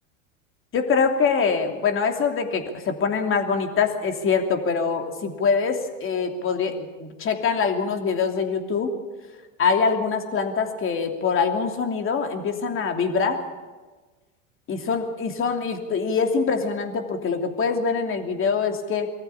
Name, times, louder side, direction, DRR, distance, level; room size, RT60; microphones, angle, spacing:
voice 1, 0.7-8.9 9.6-13.4 14.7-19.1, left 5 dB, 35° left, 5 dB, 2.9 m, -24 dB
23.5 x 14.5 x 8.6 m, 1.3 s
hypercardioid pair, 95°, 38 cm